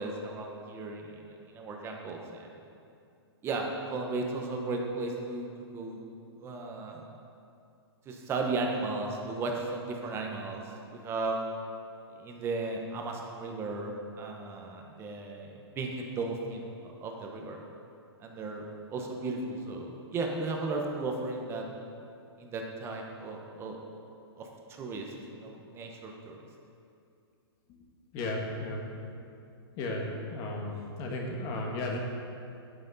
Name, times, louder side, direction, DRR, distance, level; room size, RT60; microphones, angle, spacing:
voice 1, 0.0-2.5 3.4-5.5 5.7-6.0 6.4-7.0 8.1-10.6 10.9-11.4 12.2-17.6 18.2-21.6 22.4-23.8 24.4-26.4, right 3 dB, 15° right, 1 dB, 1.0 m, -35 dB
voice 2, 28.1-28.9 29.8-32.0, left 2 dB, 30° left, 0 dB, 1.5 m, -34 dB
10.5 x 9.2 x 4.1 m, 2.5 s
hypercardioid pair, 155°, 14 cm